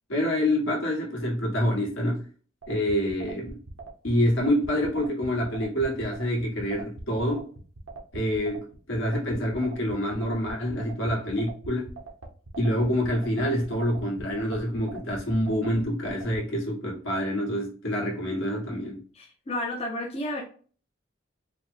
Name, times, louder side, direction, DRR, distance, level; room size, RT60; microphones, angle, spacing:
voice 1, 0.1-2.2 2.7-3.6 4.0-7.5 8.1-11.9 12.6-19.0, equal, 75° left, 1.5 m, -27 dB
sound 1, 2.6-16.4, right 3 dB, 90° right, 0.9 m, -41 dB
voice 2, 19.1-20.4, left 1 dB, 30° left, 0.6 m, -32 dB
4.8 x 2.1 x 3.2 m
head